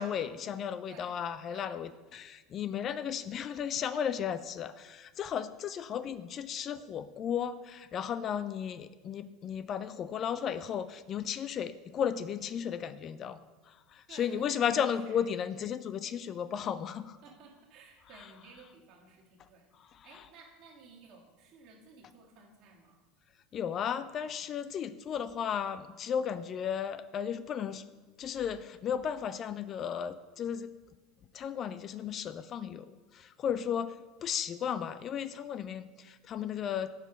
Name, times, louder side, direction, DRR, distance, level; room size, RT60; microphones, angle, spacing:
voice 1, 0.0-17.2 18.1-18.3 19.8-20.3 23.5-27.8 28.2-30.7 31.3-34.0 34.2-36.9, left 8 dB, 40° left, 14 dB, 0.3 m, -35 dB
voice 2, 0.9-1.2 1.5-1.7 14.1-14.6 15.1-15.2 17.2-23.0, right 4 dB, 55° right, -1 dB, 1.7 m, -55 dB
6.3 x 5.0 x 5.0 m, 1.3 s
hypercardioid pair, 80°, 0 cm